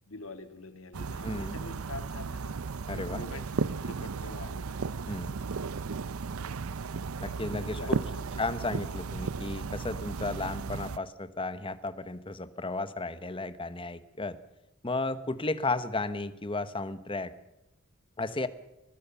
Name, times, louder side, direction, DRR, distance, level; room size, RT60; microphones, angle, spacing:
voice 1, 0.1-2.5 3.0-4.7 6.3-6.5 7.2-8.3 8.6-8.7, left 2 dB, 75° left, 8 dB, 2.3 m, -45 dB
sound 1, 0.9-11.0, right 4 dB, 85° right, 0.6 m, -35 dB
voice 2, 1.2-1.6 2.9-3.2 5.1-5.4 7.2-8.0 8.4-14.4 14.8-17.3 18.2-18.5, left 2 dB, 25° left, 13 dB, 1.1 m, -34 dB
23.0 x 20.0 x 5.7 m, 0.94 s
head